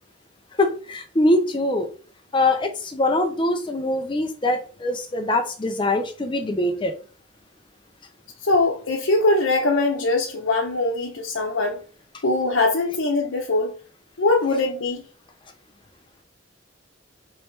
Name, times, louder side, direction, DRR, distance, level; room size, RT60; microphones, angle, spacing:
voice 1, 0.6-1.9 2.3-6.9, left 2 dB, 25° left, 0.5 m, -23 dB
voice 2, 8.4-11.8 12.2-13.7 14.2-15.0, left 2 dB, 85° left, 0.8 m, -22 dB
4.8 x 3.1 x 3.2 m
head